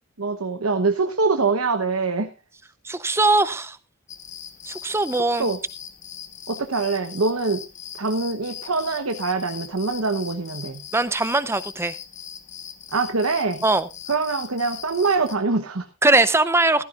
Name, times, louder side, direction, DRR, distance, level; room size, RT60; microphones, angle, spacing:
voice 1, 0.2-2.3 5.4-5.6 6.5-7.6 8.0-10.8 12.9-13.6 14.1-15.9, right 4 dB, 80° right, 7 dB, 1.0 m, -24 dB
voice 2, 2.8-3.8 4.7-5.5 10.9-12.0 13.6-13.9 16.0-16.8, right 2 dB, 10° right, 14 dB, 0.6 m, -20 dB
sound 1, 4.1-15.4, left 8 dB, 35° left, 1.1 m, -40 dB
15.0 x 14.5 x 2.5 m, 0.28 s
head